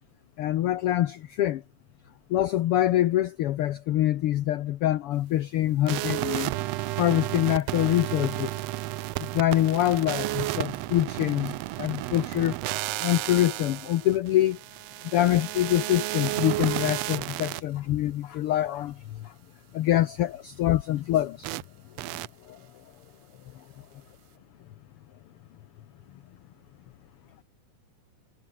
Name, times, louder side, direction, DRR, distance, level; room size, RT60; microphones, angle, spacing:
voice 1, 0.4-1.6 2.3-6.5 7.0-8.6 9.2-12.6 13.0-14.6 15.1-19.3 19.7-21.5 22.5-22.6, left 13 dB, 75° left, 1.3 m, -25 dB
sound 1, 5.9-17.6 21.4-21.6 22.0-22.3, right 18 dB, 90° right, 1.4 m, -32 dB
voice 2, 26.6-27.4, left 4 dB, 45° left, 5.3 m, -70 dB
omnidirectional pair, 3.5 m